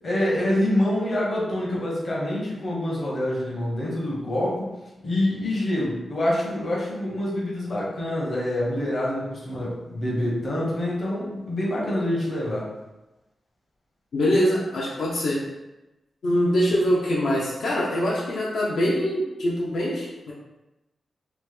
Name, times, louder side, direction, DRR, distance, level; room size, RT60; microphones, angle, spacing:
voice 1, 0.0-4.7 5.0-12.7, left 1 dB, 40° left, -5 dB, 0.8 m, -26 dB
voice 2, 14.1-15.4 16.2-20.3, equal, 75° left, -6 dB, 0.5 m, -23 dB
3.0 x 2.1 x 3.2 m, 1.0 s
wide cardioid pair, 150°, 0 cm